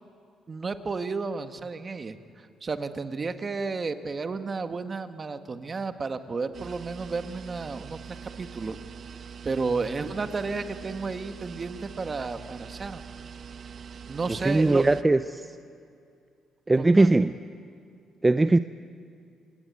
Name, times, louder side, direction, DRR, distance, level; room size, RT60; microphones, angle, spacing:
voice 1, 0.5-8.8 9.4-13.0 14.1-14.9 16.8-17.1, right 4 dB, 35° right, 9 dB, 1.5 m, -32 dB
sound 1, 6.5-15.0, right 6 dB, 55° right, 1.0 m, -43 dB
voice 2, 14.4-15.5 16.7-17.3 18.2-18.6, right 2 dB, 20° right, 12 dB, 0.6 m, -20 dB
27.5 x 18.0 x 9.4 m, 2.4 s
cardioid pair, 90°, 0 cm